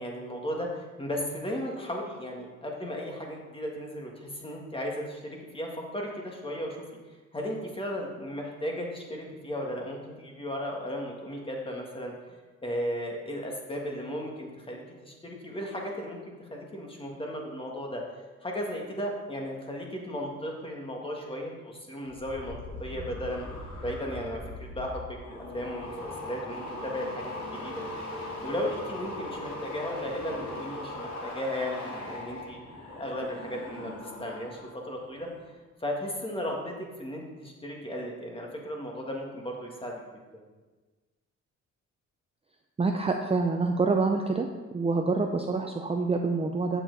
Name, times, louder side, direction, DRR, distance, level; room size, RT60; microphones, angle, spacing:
voice 1, 0.0-6.8 7.3-12.1 12.6-18.1 18.4-23.5 23.8-27.8 28.4-32.6 32.9-33.9 34.2-35.3 35.8-40.1, equal, 20° left, 0 dB, 1.7 m, -35 dB
sound 1, 22.1-34.7 35.0-35.4, left 1 dB, 60° left, 2.5 m, -39 dB
voice 2, 42.8-44.5 44.7-46.8, right 3 dB, 20° right, 3 dB, 0.5 m, -26 dB
7.6 x 7.0 x 4.0 m, 1.3 s
cardioid pair, 90°, 30 cm